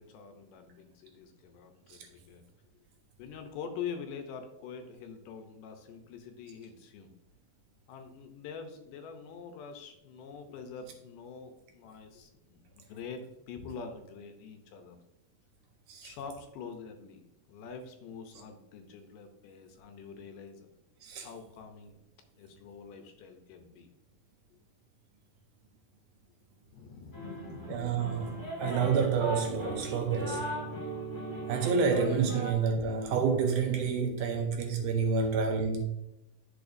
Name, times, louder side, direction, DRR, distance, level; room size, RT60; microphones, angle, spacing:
voice 1, 0.0-2.4 3.2-7.1 7.9-15.0 16.0-20.7 21.2-22.0 22.4-23.9 24.5-24.6 26.7-28.0 32.4-32.5, left 6 dB, 75° left, 2.2 m, -45 dB
sound 1, 27.1-32.5, right 1 dB, 10° left, 1.3 m, -37 dB
voice 2, 27.7-30.4 31.5-35.8, right 5 dB, 75° right, 2.1 m, -29 dB
12.0 x 4.4 x 2.6 m
omnidirectional pair, 4.0 m